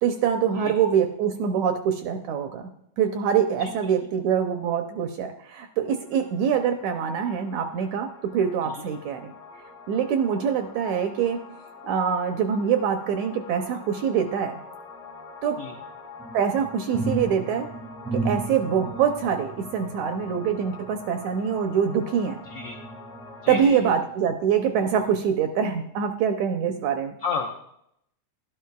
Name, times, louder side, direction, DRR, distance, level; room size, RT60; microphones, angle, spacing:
voice 1, 0.0-2.7 3.0-9.3 9.9-11.4 11.8-14.6 15.4-15.6 16.3-17.7 18.1-22.4 23.5-27.2, right 7 dB, 80° right, 6 dB, 1.7 m, -24 dB
voice 2, 3.6-3.9 8.7-8.8 15.6-15.7 22.5-22.8 23.4-23.9 27.2-27.5, left 5 dB, 85° left, 1 dB, 1.3 m, -32 dB
sound 1, 6.0-23.6, left 4 dB, 60° left, 1.0 m, -45 dB
sound 2, 16.2-22.0 22.4-23.6 24.0-24.2, right 3 dB, 5° left, 0.4 m, -35 dB
12.0 x 11.0 x 2.3 m, 0.74 s
omnidirectional pair, 3.7 m